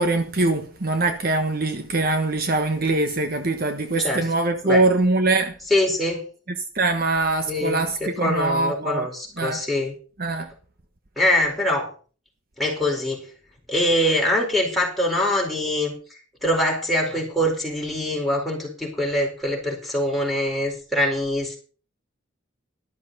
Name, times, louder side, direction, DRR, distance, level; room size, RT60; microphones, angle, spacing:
voice 1, 0.0-5.5 6.7-9.1 9.4-9.6 10.2-10.5, right 2 dB, 50° right, 1.1 m, -22 dB
voice 2, 5.7-6.2 7.5-9.9 11.2-11.9 12.6-13.2 13.7-16.0 16.4-21.6, left 1 dB, ahead, 4.4 m, -23 dB
13.0 x 12.0 x 4.1 m
head